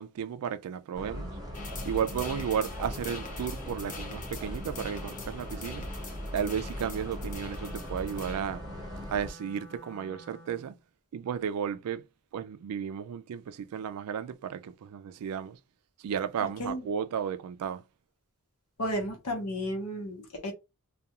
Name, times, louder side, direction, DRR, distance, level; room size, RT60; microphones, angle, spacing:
voice 1, 0.0-1.4 1.8-5.8 6.3-8.6 9.1-10.7 11.1-12.0 12.3-15.6 16.0-17.8, right 8 dB, 85° right, 0.3 m, -33 dB
sound 1, 0.9-9.3, equal, 15° right, 0.9 m, -39 dB
sound 2, 1.5-8.4, left 4 dB, 35° left, 0.5 m, -45 dB
Wind instrument woodwind instrument, 7.4-10.8, right 1 dB, 60° left, 1.1 m, -51 dB
voice 2, 18.8-20.5, equal, 90° left, 0.9 m, -33 dB
2.3 x 2.3 x 2.8 m
head